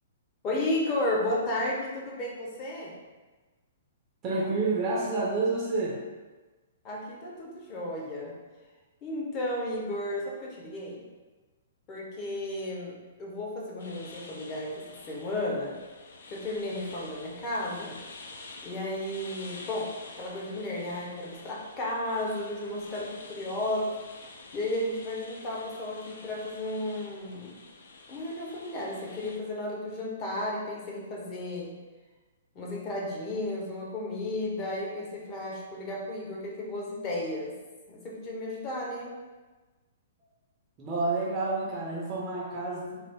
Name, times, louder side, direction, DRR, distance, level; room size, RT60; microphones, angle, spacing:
voice 1, 0.4-3.0 6.8-8.4 9.0-11.0 11.9-12.9 13.2-15.7 16.3-18.0 18.6-24.0 24.5-27.6 28.1-31.7 32.5-37.5 37.9-39.1, left 1 dB, 30° left, -3 dB, 0.8 m, -33 dB
voice 2, 4.2-6.0 40.8-43.0, right 3 dB, 25° right, -4 dB, 0.5 m, -29 dB
sound 1, 13.8-29.4, left 3 dB, 60° left, 0.4 m, -48 dB
3.2 x 2.0 x 3.6 m, 1.3 s
figure-of-eight pair, 115°, 0 cm